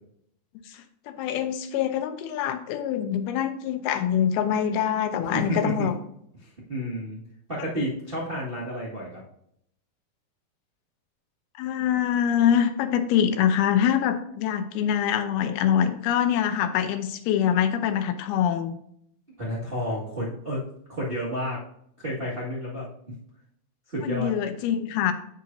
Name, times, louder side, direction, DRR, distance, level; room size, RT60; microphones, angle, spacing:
voice 1, 0.7-6.0 11.6-18.7 24.0-25.1, left 9 dB, 85° left, 8 dB, 2.7 m, -24 dB
voice 2, 5.3-5.7 6.4-7.2 7.5-9.2 19.4-20.6 20.9-21.6 22.0-22.9 23.9-24.3, equal, 45° right, -7 dB, 0.7 m, -31 dB
8.2 x 7.5 x 2.7 m, 0.71 s
omnidirectional pair, 4.4 m